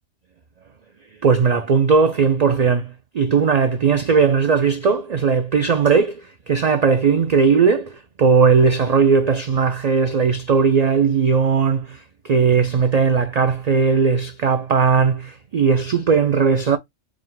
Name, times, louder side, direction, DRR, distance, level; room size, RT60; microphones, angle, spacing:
voice 1, 1.2-6.2 6.5-7.9 8.2-12.0 12.2-16.8, right 5 dB, 60° right, 0.4 m, -17 dB
4.7 x 2.1 x 3.9 m
omnidirectional pair, 1.3 m